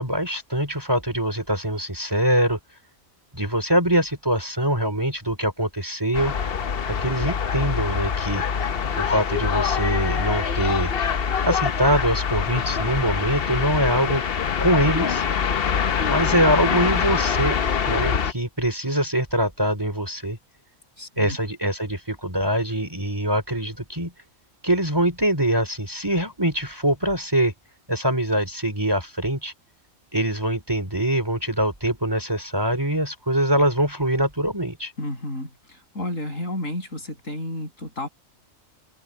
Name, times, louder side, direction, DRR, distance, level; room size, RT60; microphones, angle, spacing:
voice 1, 0.0-2.6 3.3-6.3 6.9-8.4 8.9-10.9 11.4-14.2 14.6-15.2 16.1-17.6 17.8-20.4 21.2-24.1 24.6-27.5 27.9-29.5 30.1-34.9, right 1 dB, 15° right, 3.1 m, -23 dB
sound 1, 6.1-18.3, left 7 dB, 50° left, 1.0 m, -24 dB
voice 2, 21.0-21.4 35.0-38.1, left 1 dB, 70° left, 8.1 m, -32 dB
open air
omnidirectional pair, 1.4 m